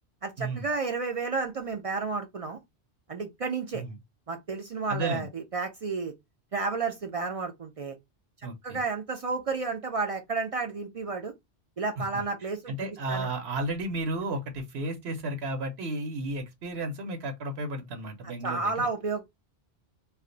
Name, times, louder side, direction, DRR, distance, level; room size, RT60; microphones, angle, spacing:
voice 1, 0.2-2.6 3.1-3.8 4.3-6.1 6.5-8.0 8.6-11.3 11.8-13.3 18.4-19.3, right 4 dB, 55° right, 0.4 m, -31 dB
voice 2, 4.9-5.3 8.4-8.8 12.0-12.1 12.7-18.9, right 2 dB, 80° right, 0.9 m, -33 dB
2.4 x 2.2 x 3.7 m
omnidirectional pair, 1.1 m